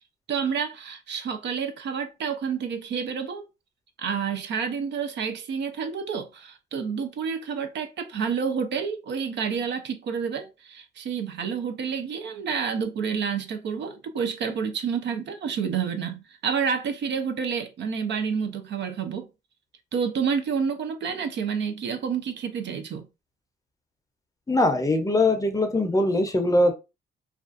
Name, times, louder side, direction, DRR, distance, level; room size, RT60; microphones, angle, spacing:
voice 1, 0.3-3.4 4.0-19.3 19.9-23.1, right 6 dB, 60° right, 0.5 m, -29 dB
voice 2, 24.5-26.7, left 2 dB, 15° left, 0.6 m, -21 dB
2.4 x 2.3 x 2.4 m
cardioid pair, 80°, 20 cm